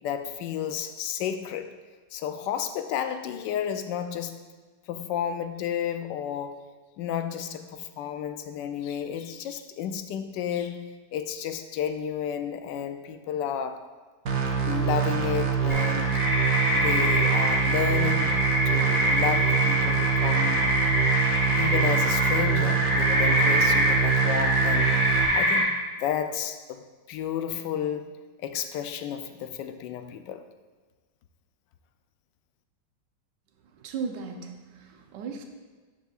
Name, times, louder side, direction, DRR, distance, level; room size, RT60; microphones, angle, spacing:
voice 1, 0.0-1.7 2.1-4.4 4.9-6.7 7.0-13.9 14.7-16.2 16.7-18.4 18.7-20.7 21.6-25.0 25.3-30.4, left 9 dB, 85° left, 9 dB, 1.3 m, -32 dB
sound 1, 14.3-25.3, right 7 dB, 55° right, 1.1 m, -25 dB
sound 2, 15.7-25.6, equal, 65° left, 3.2 m, -24 dB
voice 2, 33.7-35.4, right 5 dB, 80° right, 4 dB, 1.4 m, -36 dB
12.0 x 6.3 x 2.4 m, 1.4 s
omnidirectional pair, 1.9 m